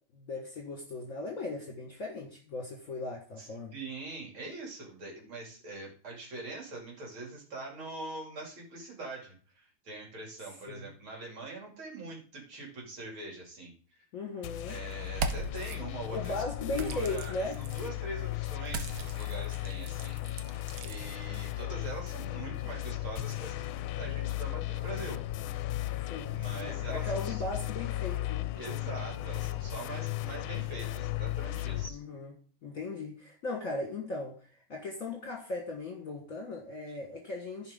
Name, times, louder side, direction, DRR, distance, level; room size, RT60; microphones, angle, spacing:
voice 1, 0.1-3.7 10.7-10.9 14.1-14.8 16.1-17.6 26.0-28.5 31.9-32.3 32.6-34.4 34.7-37.7, left 2 dB, 45° left, 1.7 m, -38 dB
voice 2, 3.4-13.7 14.7-16.3 16.6-25.2 26.3-27.4 28.5-32.0, right 2 dB, 75° right, 3.5 m, -43 dB
sound 1, 14.4-31.9, left 15 dB, 80° left, 1.4 m, -36 dB
sound 2, 15.1-15.8 16.7-17.9 18.7-21.0, right 5 dB, 60° right, 1.1 m, -38 dB
15.0 x 5.3 x 3.6 m
omnidirectional pair, 2.3 m